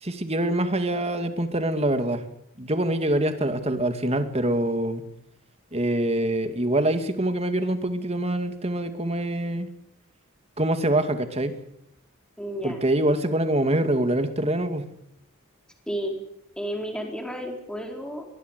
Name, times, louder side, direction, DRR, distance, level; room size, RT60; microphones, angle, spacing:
voice 1, 0.0-2.2 2.6-5.0 5.7-9.7 10.6-11.6 12.6-14.9, right 1 dB, 30° right, 8 dB, 2.4 m, -25 dB
voice 2, 12.4-12.9 15.9-16.1 16.6-18.2, equal, 5° left, 2 dB, 4.6 m, -32 dB
23.5 x 20.5 x 8.3 m, 0.79 s
head